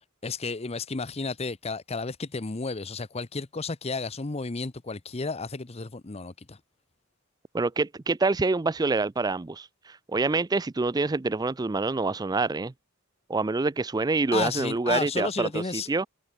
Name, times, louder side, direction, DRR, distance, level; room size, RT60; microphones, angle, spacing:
voice 1, 0.2-6.6 14.3-15.9, left 4 dB, 30° left, 0.8 m, -32 dB
voice 2, 7.5-12.7 13.3-16.1, right 3 dB, 20° right, 0.4 m, -26 dB
head